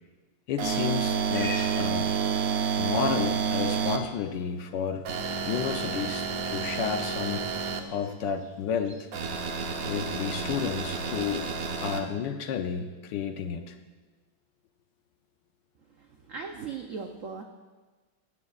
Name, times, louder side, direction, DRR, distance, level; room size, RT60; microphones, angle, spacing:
voice 1, 0.5-2.1 2.8-5.1 5.4-7.5 7.9-9.1 9.8-11.5 11.8-13.8, left 7 dB, 70° left, 7 dB, 1.2 m, -31 dB
sound 1, 0.6-4.0 5.0-7.8 9.1-12.0, right 6 dB, 55° right, 1.1 m, -29 dB
Livestock farm animals working animals, 0.7-11.6, left 1 dB, 15° right, 1.3 m, -48 dB
voice 2, 16.3-17.4, right 5 dB, 80° right, 4 dB, 0.7 m, -37 dB
17.0 x 13.5 x 2.4 m, 1.3 s
omnidirectional pair, 2.3 m